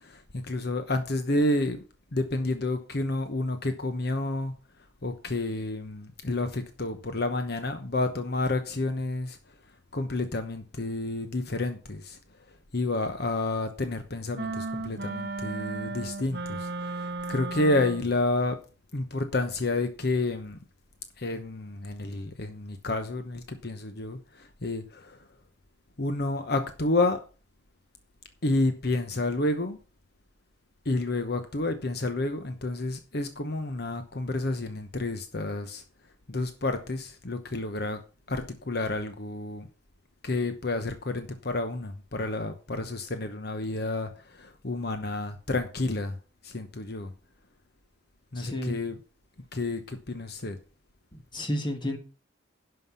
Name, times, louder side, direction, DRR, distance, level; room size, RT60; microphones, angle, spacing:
voice 1, 0.0-1.8 2.1-4.5 5.0-9.4 9.9-12.2 12.7-18.6 18.9-20.6 21.2-25.2 26.0-27.2 28.4-29.8 30.8-35.8 36.3-38.0 38.3-39.7 40.2-46.2 46.4-47.1 48.3-49.0 49.5-50.6, left 2 dB, 55° left, 8 dB, 1.0 m, -30 dB
sound 1, 14.4-18.2, right 3 dB, 55° right, 0.8 m, -35 dB
voice 2, 48.3-48.8 51.1-52.0, left 1 dB, 25° left, 5 dB, 1.7 m, -31 dB
11.0 x 5.7 x 5.7 m, 0.35 s
head